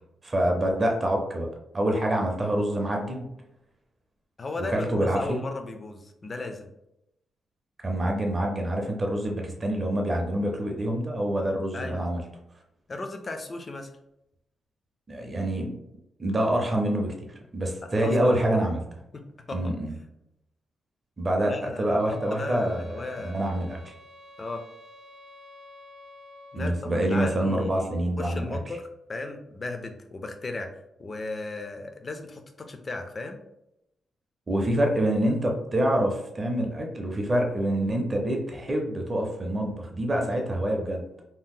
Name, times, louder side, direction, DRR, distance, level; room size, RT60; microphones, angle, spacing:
voice 1, 0.2-1.5 1.7-3.3 4.6-5.4 7.8-12.2 15.1-15.7 16.2-17.1 17.5-18.8 19.5-19.9 21.2-23.9 26.6-28.6 34.5-41.0, right 1 dB, 25° right, 1 dB, 0.5 m, -26 dB
voice 2, 4.4-6.7 11.7-12.0 12.9-13.9 17.8-18.4 19.1-19.7 21.4-23.4 24.4-24.7 26.5-30.7 31.0-33.4, left 2 dB, 30° left, 5 dB, 0.4 m, -36 dB
sound 1, 22.0-26.7, left 1 dB, 85° right, 0.6 m, -50 dB
2.7 x 2.1 x 3.6 m, 0.84 s
cardioid pair, 130°, 0 cm